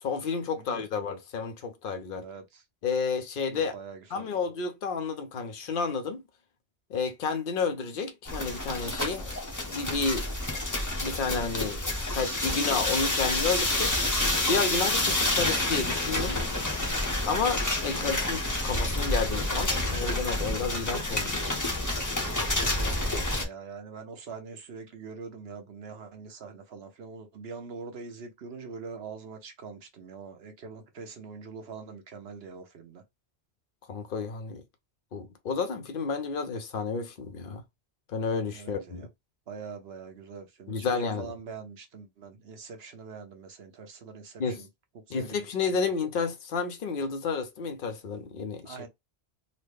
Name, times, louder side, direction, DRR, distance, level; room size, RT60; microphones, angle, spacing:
voice 1, 0.0-2.2 2.8-3.7 4.1-6.2 6.9-9.3 9.7-10.3 11.0-11.8 12.1-13.9 14.5-16.4 17.3-21.4 33.9-34.6 35.1-37.6 38.1-39.1 40.7-41.3 44.4-44.6 45.1-48.8, left 5 dB, 60° left, 0.8 m, -31 dB
voice 2, 2.1-2.6 3.5-4.5 15.0-15.4 17.9-18.2 21.2-21.6 22.2-33.0 38.5-39.1 39.5-44.7 44.9-45.9 48.6-48.9, right 5 dB, 75° right, 1.1 m, -44 dB
sound 1, 8.3-23.4, left 1 dB, 20° left, 0.8 m, -28 dB
4.0 x 2.1 x 3.2 m
omnidirectional pair, 1.1 m